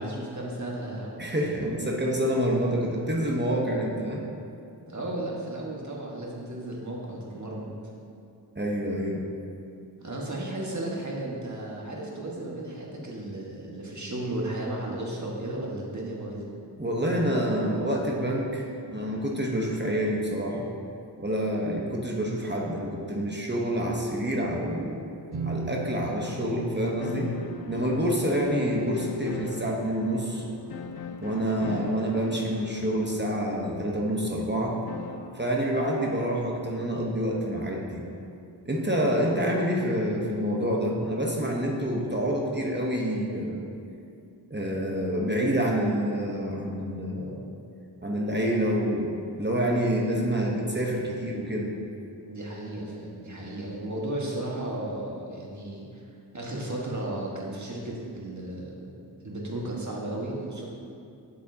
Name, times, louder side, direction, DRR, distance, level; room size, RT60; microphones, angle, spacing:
voice 1, 0.0-1.3 4.9-7.7 10.0-16.5 50.2-50.7 52.2-56.0 56.3-58.9 59.2-60.6, right 1 dB, 40° right, -3 dB, 1.5 m, -34 dB
voice 2, 1.2-4.2 8.6-9.3 16.8-20.7 21.2-24.9 25.4-27.3 27.7-30.4 31.2-34.8 35.3-38.0 38.7-43.6 44.5-47.4 48.0-49.1 49.4-51.7, equal, 25° right, -2 dB, 0.9 m, -27 dB
sound 1, 25.3-30.9, right 2 dB, 60° right, 0.9 m, -39 dB
sound 2, 27.0-35.4, left 5 dB, 60° left, 0.5 m, -40 dB
8.4 x 7.2 x 2.8 m, 2.5 s
wide cardioid pair, 60°, 42 cm